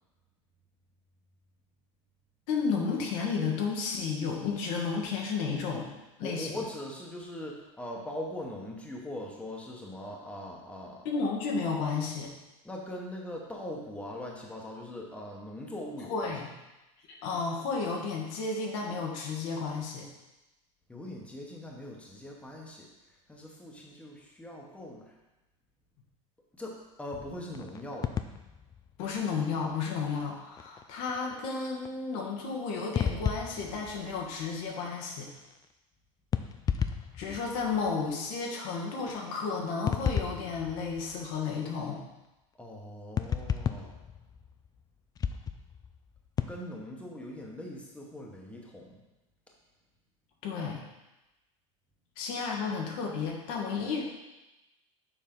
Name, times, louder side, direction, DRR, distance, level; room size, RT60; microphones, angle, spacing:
voice 1, 2.5-5.9 6.2-6.6 11.0-12.3 16.1-16.5 17.1-20.1 29.0-35.3 37.1-42.0 50.4-50.8 52.2-54.0, left 5 dB, 65° left, 0 dB, 1.3 m, -32 dB
voice 2, 6.2-11.0 12.6-16.1 20.9-22.9 23.3-25.1 26.5-28.1 42.6-44.0 46.5-49.0, left 1 dB, 5° left, -2 dB, 1.3 m, -41 dB
sound 1, 27.5-29.9 30.2-30.3 30.6-30.8 31.1-31.5 31.8-31.9 32.9-34.8 35.0-35.7 36.3-38.3 39.9-41.7 43.2-44.9 45.2-46.5, left 7 dB, 20° left, 0.4 m, -34 dB
6.9 x 4.5 x 3.8 m, 1.0 s
hypercardioid pair, 105°, 17 cm